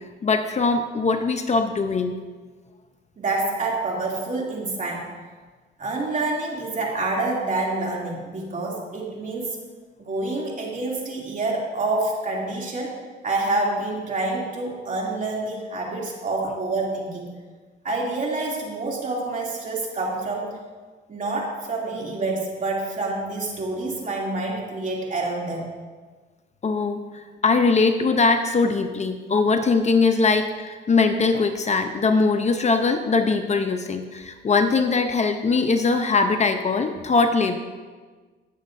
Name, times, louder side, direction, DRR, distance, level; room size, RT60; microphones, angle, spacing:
voice 1, 0.2-2.1 26.6-37.6, left 4 dB, 35° left, 6 dB, 0.7 m, -21 dB
voice 2, 3.2-5.1 5.8-9.6 10.0-12.9 13.2-17.3 17.8-20.5 21.1-25.7, right 2 dB, 40° right, -3 dB, 2.7 m, -27 dB
18.0 x 7.3 x 2.6 m, 1.4 s
cardioid pair, 90°, 20 cm